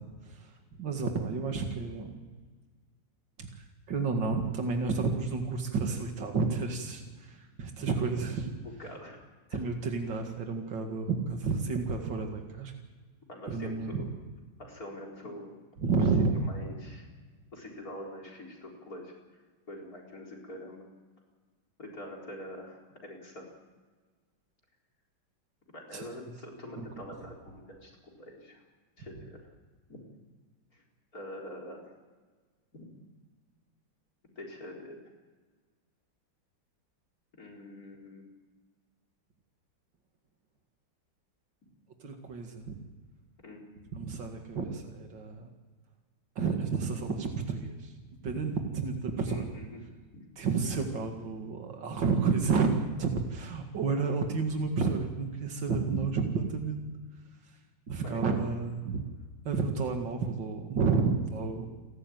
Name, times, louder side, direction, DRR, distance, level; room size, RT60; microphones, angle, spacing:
voice 1, 0.8-2.1 3.4-3.5 3.9-8.5 9.5-12.7 13.5-14.0 15.8-16.3 25.9-26.0 26.8-27.0 42.0-42.7 43.9-45.5 46.4-47.9 48.2-49.5 50.4-56.8 57.9-59.0 59.4-61.7, right 4 dB, 80° right, 3 dB, 2.8 m, -30 dB
voice 2, 8.6-9.2 9.5-9.6 13.3-14.1 14.6-15.5 15.9-16.1 16.4-17.1 17.5-19.1 19.7-20.8 21.8-23.5 25.7-28.6 29.0-29.4 29.9-30.0 31.1-31.9 32.7-32.9 34.4-35.0 37.4-38.2 43.4-43.6 49.3-49.8 58.0-58.4, left 1 dB, 50° left, 2 dB, 4.8 m, -45 dB
29.5 x 13.0 x 9.3 m, 1.4 s
omnidirectional pair, 2.0 m